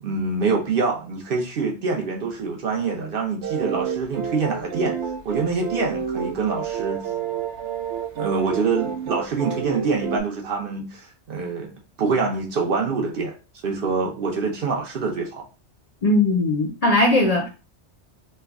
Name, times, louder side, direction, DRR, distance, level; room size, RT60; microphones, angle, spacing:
voice 1, 0.0-5.0 5.2-7.0 8.2-11.7 12.0-13.3 13.6-15.5, right 4 dB, 60° right, 0.9 m, -25 dB
sound 1, 3.4-10.2, right 8 dB, 85° right, 0.9 m, -29 dB
voice 2, 16.0-17.5, left 2 dB, 50° left, 0.5 m, -19 dB
3.2 x 2.2 x 3.4 m
omnidirectional pair, 1.1 m